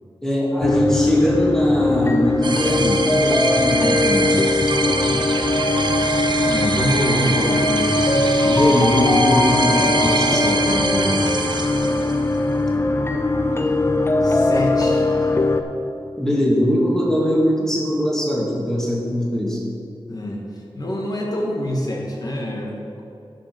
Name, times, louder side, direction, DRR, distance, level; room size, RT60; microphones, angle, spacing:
voice 1, 0.2-4.4 8.4-10.7 16.2-19.6, equal, 5° left, -4 dB, 2.2 m, -21 dB
sound 1, 0.6-15.6, left 2 dB, 25° left, 0.6 m, -20 dB
sound 2, 2.4-12.3, right 3 dB, 55° right, 0.8 m, -25 dB
voice 2, 5.0-5.3 6.3-8.5 10.3-11.3 13.5-13.7 14.2-15.4 20.1-23.0, equal, 45° left, -1 dB, 1.8 m, -26 dB
11.0 x 5.6 x 6.2 m, 2.5 s
wide cardioid pair, 100°, 9 cm